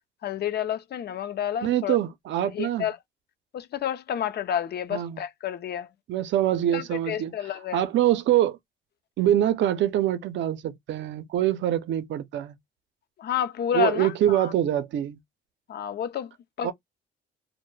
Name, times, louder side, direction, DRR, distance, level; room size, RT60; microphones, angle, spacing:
voice 1, 0.2-2.0 2.5-3.0 3.5-5.9 6.7-7.9 13.2-14.5 15.7-16.3 16.6-16.7, left 9 dB, 55° left, 0.5 m, -30 dB
voice 2, 1.6-2.9 4.9-5.2 6.1-7.3 7.7-8.6 9.2-12.6 13.7-15.2 16.6-16.7, right 12 dB, 65° right, 0.5 m, -24 dB
2.1 x 2.1 x 3.1 m
cardioid pair, 90°, 20 cm